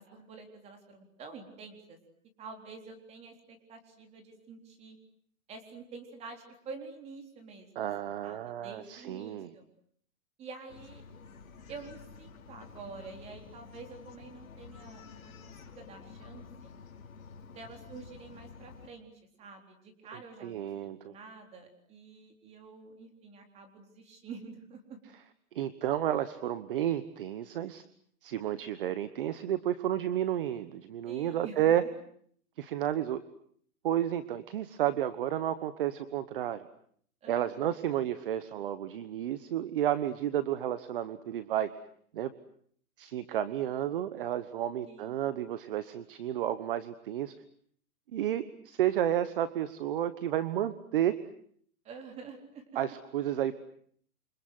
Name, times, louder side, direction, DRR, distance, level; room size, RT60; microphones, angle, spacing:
voice 1, 0.0-2.0 2.4-5.0 5.5-9.7 10.4-11.0 11.7-16.7 17.5-19.1 19.4-25.0 31.1-31.6 37.2-37.7 44.8-45.3 51.8-52.6, right 4 dB, 15° right, 5 dB, 3.9 m, -48 dB
voice 2, 7.7-9.5 20.4-21.1 25.5-27.8 28.2-31.8 32.6-33.2 33.8-36.7 37.3-41.7 42.1-42.3 43.0-47.3 48.1-51.2 52.7-53.6, right 11 dB, 40° right, 14 dB, 1.2 m, -31 dB
Bark, 10.7-18.9, left 5 dB, 65° left, 4.7 m, -50 dB
28.5 x 25.5 x 8.0 m, 0.64 s
hypercardioid pair, 165°, 43 cm